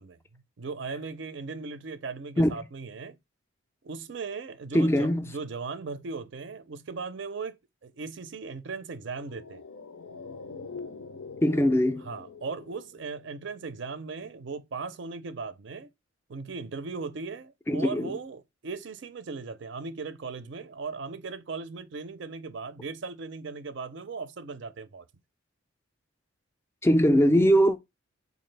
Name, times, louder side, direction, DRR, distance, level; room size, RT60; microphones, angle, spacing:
voice 1, 0.0-3.2 3.8-9.6 12.1-15.9 16.3-25.0, right 4 dB, 60° right, 0.4 m, -38 dB
voice 2, 4.7-5.3 11.4-12.1 17.7-18.2 26.8-27.8, equal, 10° left, 0.3 m, -21 dB
sound 1, 9.1-13.7 13.9-14.0, left 4 dB, 80° left, 0.5 m, -44 dB
4.1 x 2.4 x 3.2 m
head